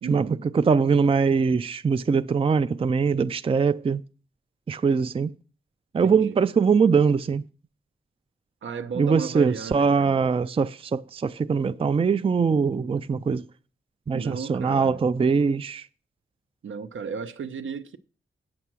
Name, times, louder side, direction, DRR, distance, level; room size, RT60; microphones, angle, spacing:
voice 1, 0.0-0.5 6.0-6.4 8.6-10.2 14.1-15.0 16.6-18.0, right 5 dB, 70° right, 0.7 m, -35 dB
voice 2, 0.5-4.0 4.7-5.3 5.9-7.4 9.0-13.4 14.1-15.9, right 5 dB, 25° right, 0.4 m, -22 dB
8.6 x 6.9 x 6.1 m
wide cardioid pair, 90°, 21 cm